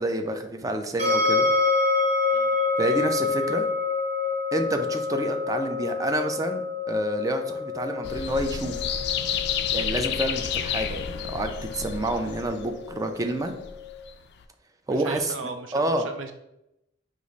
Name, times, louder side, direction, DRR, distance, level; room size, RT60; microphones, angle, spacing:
voice 1, 0.0-1.5 2.8-3.7 4.5-8.8 9.7-13.6 14.9-15.3 15.7-16.1, right 1 dB, 20° right, 5 dB, 0.4 m, -28 dB
sound 1, 1.0-14.0, left 4 dB, 35° right, 1.3 m, -28 dB
sound 2, 8.0-12.8 13.5-14.1 14.4-14.5, left 8 dB, 60° left, 0.3 m, -30 dB
voice 2, 15.0-16.3, right 4 dB, 70° right, 6 dB, 0.5 m, -36 dB
5.1 x 2.5 x 3.1 m, 0.86 s
head